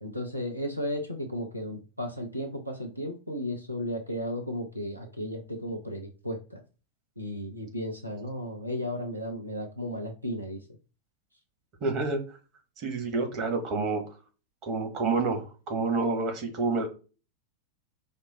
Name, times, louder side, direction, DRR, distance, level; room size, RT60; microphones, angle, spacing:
voice 1, 0.0-6.6 7.2-10.6, equal, 85° right, 3 dB, 0.7 m, -34 dB
voice 2, 11.8-12.2 12.8-14.0 14.6-16.9, right 3 dB, 35° right, 4 dB, 1.2 m, -28 dB
5.2 x 2.1 x 3.9 m, 0.33 s
figure-of-eight pair, 90°, 0 cm